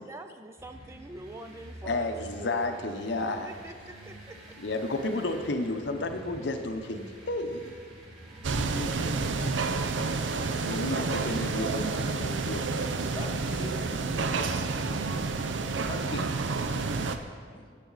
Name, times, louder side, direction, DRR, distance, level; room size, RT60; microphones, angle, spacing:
voice 1, 0.0-2.1 2.4-2.7 3.3-4.6, right 1 dB, 15° right, 6 dB, 0.4 m, -45 dB
sound 1, 0.6-17.3, right 1 dB, 30° right, 2.6 m, -48 dB
voice 2, 1.8-3.5 4.6-7.7 8.5-9.9 10.6-13.0 16.1-16.2, left 2 dB, 65° left, 5 dB, 0.8 m, -32 dB
sound 2, 8.4-17.2, right 4 dB, 80° right, 0.6 m, -29 dB
voice 3, 13.1-15.5 15.8-16.4 17.5-17.7, left 2 dB, 25° left, 3 dB, 1.0 m, -43 dB
13.0 x 8.2 x 4.0 m, 2.1 s
head